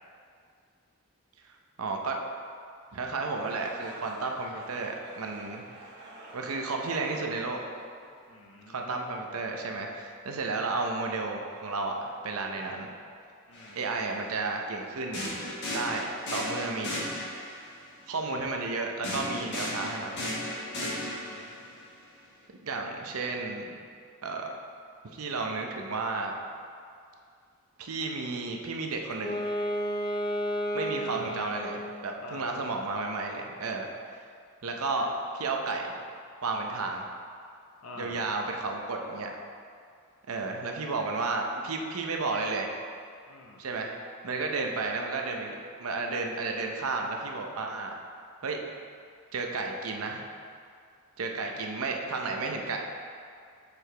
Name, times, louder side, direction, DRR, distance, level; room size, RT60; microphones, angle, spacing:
voice 1, 1.8-2.2 2.9-5.7 6.3-7.6 8.7-12.9 13.7-15.2 15.7-17.1 18.1-20.2 22.6-23.8 24.2-24.5 25.0-26.4 27.8-29.4 30.7-33.9 34.6-36.0 36.4-37.1 38.0-39.3 40.3-42.7 43.6-43.9 44.2-48.0 48.4-48.6 49.3-50.2 51.2-52.8, right 3 dB, 75° right, 2 dB, 0.6 m, -32 dB
sound 1, 3.2-8.5, right 1 dB, 50° right, 1.1 m, -48 dB
voice 2, 8.3-9.2 12.6-12.8 13.5-14.2 20.7-21.9 31.0-31.3 32.2-32.6 37.8-38.2 43.3-43.6 51.5-51.7, left 2 dB, 70° left, 0 dB, 0.8 m, -48 dB
sound 2, 13.5-13.7 15.1-17.6 19.0-21.7, left 1 dB, 55° left, 1.4 m, -35 dB
Wind instrument woodwind instrument, 29.1-32.1, equal, 20° left, 0.3 m, -32 dB
6.8 x 4.7 x 3.3 m, 2.3 s
head